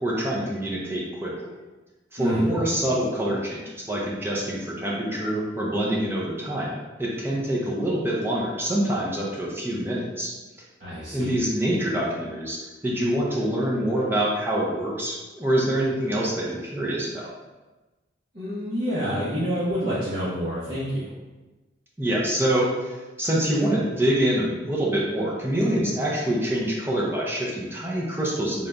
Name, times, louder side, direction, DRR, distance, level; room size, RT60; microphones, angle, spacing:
voice 1, 0.0-1.5 2.1-10.3 11.1-17.3 22.0-28.7, right 1 dB, 10° right, -5 dB, 0.6 m, -25 dB
voice 2, 2.2-2.6 10.8-11.4 18.3-21.1, equal, 45° right, -11 dB, 1.1 m, -28 dB
3.9 x 2.6 x 3.4 m, 1.2 s
head